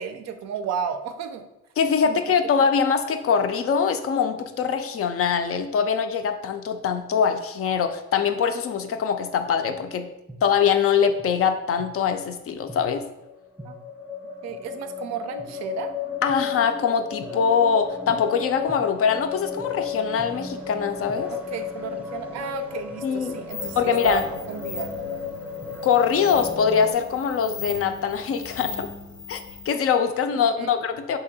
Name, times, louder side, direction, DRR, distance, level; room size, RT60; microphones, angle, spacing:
voice 1, 0.0-1.5 2.0-2.2 13.6-13.8 14.4-16.0 21.3-24.2 24.5-25.2 30.6-30.7, right 7 dB, 60° right, 8 dB, 0.4 m, -33 dB
voice 2, 1.8-10.1 10.4-13.0 16.2-21.3 23.0-23.4 23.8-24.2 25.8-28.9 29.3-29.4 29.7-31.2, left 6 dB, 50° left, 8 dB, 0.4 m, -23 dB
sound 1, 10.3-10.4 11.2-11.3 11.8-11.9 12.5-26.9, left 6 dB, 5° right, 0.7 m, -34 dB
sound 2, 23.5-29.7, left 4 dB, 90° left, 0.9 m, -38 dB
2.8 x 2.7 x 3.9 m, 0.94 s
cardioid pair, 90°, 30 cm